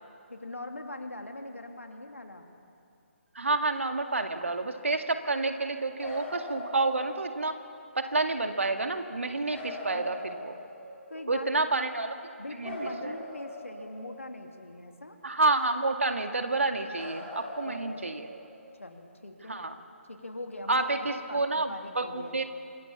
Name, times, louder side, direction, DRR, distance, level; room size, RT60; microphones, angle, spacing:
voice 1, 0.3-2.5 9.9-10.4 11.1-11.9 12.4-15.2 17.6-18.1 18.8-19.6 20.1-22.4, left 2 dB, 80° left, 4 dB, 2.9 m, -42 dB
voice 2, 3.4-7.6 8.0-10.5 11.3-12.1 12.6-13.2 15.2-18.3 19.5-19.7 20.7-22.4, right 3 dB, 70° right, 6 dB, 2.1 m, -29 dB
sound 1, 6.0-7.5 9.5-11.1 12.6-14.5 16.9-18.7 20.7-20.8, left 1 dB, 10° left, 6.8 m, -41 dB
26.5 x 23.0 x 7.1 m, 2.4 s
figure-of-eight pair, 145°, 7 cm